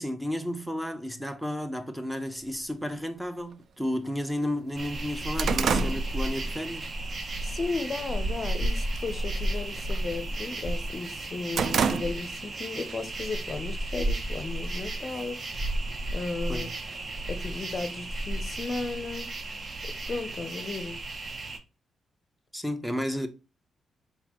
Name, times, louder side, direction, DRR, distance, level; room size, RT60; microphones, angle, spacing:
voice 1, 0.0-6.9 16.5-16.7 22.5-23.3, left 1 dB, 5° right, 0.6 m, -32 dB
sound 1, 2.5-2.6 3.5-3.6 4.1-4.2 4.5-6.9 7.3-7.6 8.0-8.5 8.8-9.1 9.4-10.7 11.1-12.5 12.9-13.0 13.9-14.8, right 6 dB, 65° right, 0.3 m, -30 dB
sound 2, 4.8-21.6, right 1 dB, 40° right, 0.7 m, -33 dB
voice 2, 7.4-15.4 16.1-16.7 17.3-19.3 19.8-21.0, left 3 dB, 40° left, 0.5 m, -35 dB
4.1 x 4.1 x 2.9 m
cardioid pair, 110°, 0 cm